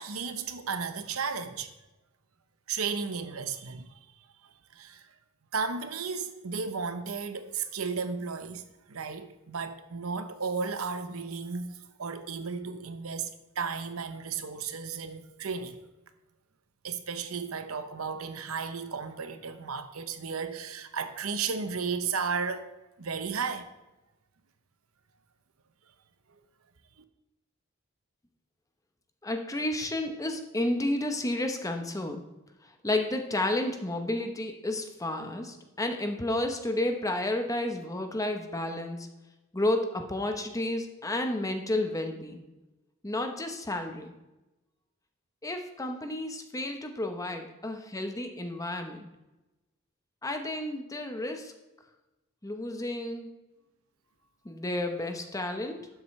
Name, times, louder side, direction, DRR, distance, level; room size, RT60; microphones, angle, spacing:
voice 1, 0.0-1.7 2.7-3.9 4.7-5.0 5.5-8.6 8.9-15.8 16.8-22.7 23.0-23.7, right 5 dB, 85° right, 0.8 m, -34 dB
voice 2, 29.2-32.3 32.8-39.1 39.5-42.4 43.0-44.1 45.4-49.1 50.2-51.5 52.4-53.3 54.4-55.9, left 1 dB, 15° left, 0.9 m, -31 dB
12.0 x 7.6 x 3.2 m
head